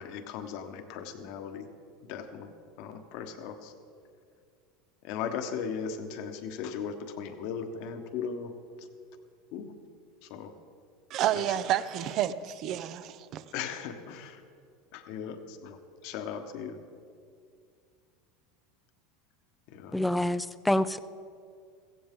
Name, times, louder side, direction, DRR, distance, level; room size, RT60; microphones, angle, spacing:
voice 1, 0.0-1.7 2.1-2.5 2.8-3.7 5.0-8.5 8.8-8.9 9.5-9.7 10.2-10.5 11.3-11.6 13.5-14.4 14.9-16.8 19.7-20.0, left 7 dB, 65° left, 7 dB, 1.2 m, -38 dB
voice 2, 11.1-13.4, right 11 dB, 50° right, 14 dB, 0.6 m, -30 dB
voice 3, 19.9-21.0, left 1 dB, 5° left, 14 dB, 0.4 m, -27 dB
15.5 x 15.5 x 3.7 m, 2.3 s
supercardioid pair, 110°, 0 cm